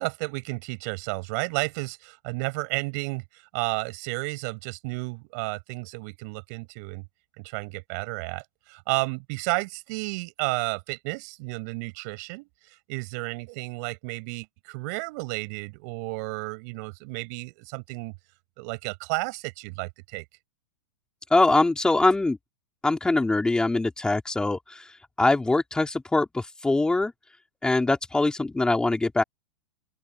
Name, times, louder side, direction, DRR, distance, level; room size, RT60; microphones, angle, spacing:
voice 1, 0.0-3.2 3.5-7.1 7.4-12.5 12.9-18.1 18.6-20.2, right 29 dB, 50° right, 7.2 m, -32 dB
voice 2, 21.3-22.4 22.8-24.9 25.2-27.1 27.6-29.2, left 2 dB, 5° left, 3.1 m, -23 dB
open air
hypercardioid pair, 135°, 12 cm